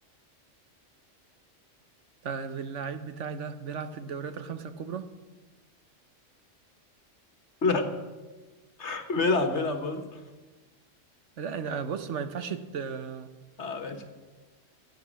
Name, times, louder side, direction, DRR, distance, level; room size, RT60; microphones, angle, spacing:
voice 1, 2.2-5.1 11.4-13.3, right 6 dB, 80° right, 1.3 m, -35 dB
voice 2, 7.6-8.0 8.8-10.2 13.6-14.0, left 3 dB, 65° left, 1.7 m, -28 dB
16.0 x 9.2 x 7.5 m
omnidirectional pair, 1.2 m